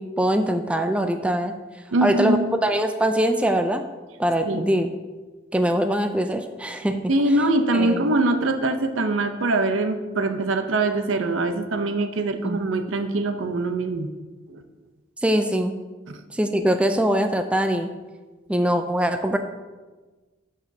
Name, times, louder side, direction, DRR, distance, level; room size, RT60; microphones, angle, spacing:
voice 1, 0.0-1.5 2.0-3.8 4.2-4.9 5.5-7.0 7.7-8.0 12.4-12.6 15.2-15.8 16.3-17.9 18.5-19.4, right 1 dB, 5° right, 7 dB, 0.3 m, -22 dB
voice 2, 1.9-2.5 4.5-4.7 7.1-14.1 14.5-14.6 16.1-16.2, right 2 dB, 80° right, 8 dB, 0.6 m, -23 dB
12.5 x 4.9 x 2.7 m, 1.3 s
head